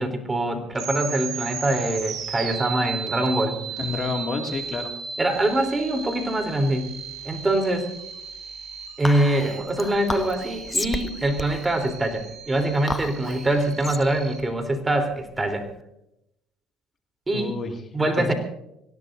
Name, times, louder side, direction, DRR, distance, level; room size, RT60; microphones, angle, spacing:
voice 1, 0.0-3.6 5.2-6.9 7.3-7.9 9.0-15.7 17.3-17.6 17.9-18.3, right 1 dB, 20° right, 5 dB, 3.6 m, -24 dB
sound 1, 0.7-14.4, right 6 dB, 55° right, 4.2 m, -36 dB
voice 2, 3.8-4.9 17.3-17.7 18.0-18.3, left 4 dB, 40° left, 3 dB, 2.3 m, -29 dB
Whispering, 9.0-15.7, left 2 dB, 15° left, 1.0 m, -33 dB
25.5 x 17.0 x 2.7 m, 0.82 s
supercardioid pair, 80°, 0 cm